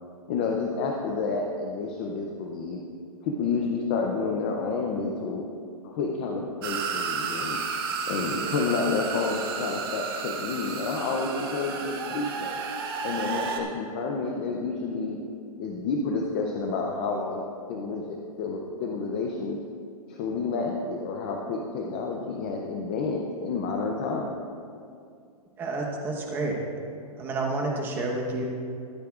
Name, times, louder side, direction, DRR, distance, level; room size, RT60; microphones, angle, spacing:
voice 1, 0.3-2.8 3.2-5.5 5.8-7.6 8.1-12.6 13.0-15.2 15.6-19.6 20.1-24.4, left 4 dB, 15° left, 1 dB, 0.4 m, -30 dB
sound 1, 6.6-13.6, right 5 dB, 35° right, 1.1 m, -32 dB
voice 2, 25.6-26.6 27.2-28.4, right 2 dB, 10° right, 0 dB, 0.9 m, -29 dB
22.5 x 8.5 x 2.4 m, 2.4 s
hypercardioid pair, 170°, 20 cm